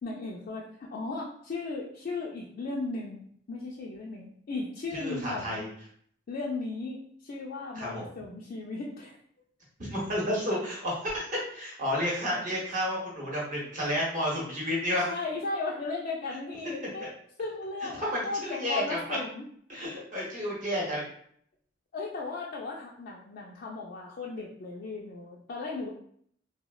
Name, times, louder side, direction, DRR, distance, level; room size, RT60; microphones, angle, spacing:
voice 1, 0.0-5.7 6.3-9.2 15.1-17.1 17.4-19.4 21.9-25.9, left 3 dB, 50° left, -3 dB, 0.4 m, -36 dB
voice 2, 4.9-5.7 7.7-8.1 9.8-11.3 11.5-15.1 17.0-17.1 18.0-19.2 19.7-21.0, equal, 45° right, -4 dB, 0.9 m, -31 dB
3.5 x 2.0 x 2.2 m, 0.63 s
head